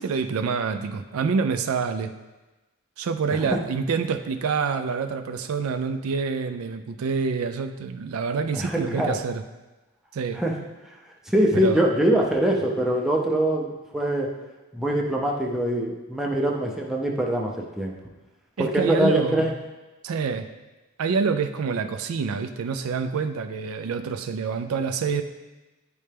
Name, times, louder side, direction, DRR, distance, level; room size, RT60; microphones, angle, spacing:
voice 1, 0.0-2.1 3.0-9.4 10.1-10.4 11.5-11.8 18.6-19.5 20.0-20.5 21.0-25.2, right 5 dB, 70° right, 7 dB, 0.4 m, -27 dB
voice 2, 8.5-9.2 10.3-10.5 11.3-14.3 14.7-17.9 18.6-19.5, right 1 dB, ahead, -2 dB, 0.5 m, -23 dB
9.5 x 3.3 x 3.3 m, 1.1 s
head